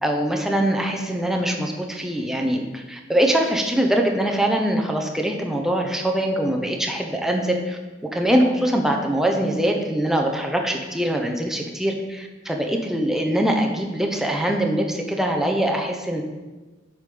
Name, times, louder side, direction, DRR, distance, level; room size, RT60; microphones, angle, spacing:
voice 1, 0.0-7.8 8.1-16.2, right 1 dB, ahead, 1 dB, 0.9 m, -23 dB
8.0 x 5.1 x 5.4 m, 1.2 s
head